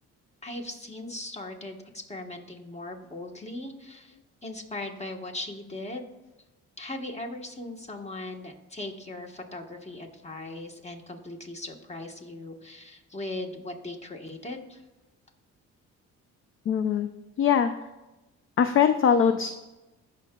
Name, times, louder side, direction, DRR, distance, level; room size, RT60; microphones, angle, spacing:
voice 1, 0.4-4.2 4.4-6.1 6.8-14.8, left 2 dB, 20° left, 3 dB, 1.3 m, -39 dB
voice 2, 16.7-17.1 17.4-17.7 18.6-19.5, left 7 dB, 45° left, 9 dB, 0.4 m, -21 dB
15.5 x 5.9 x 2.3 m, 1.0 s
cardioid pair, 90°, 30 cm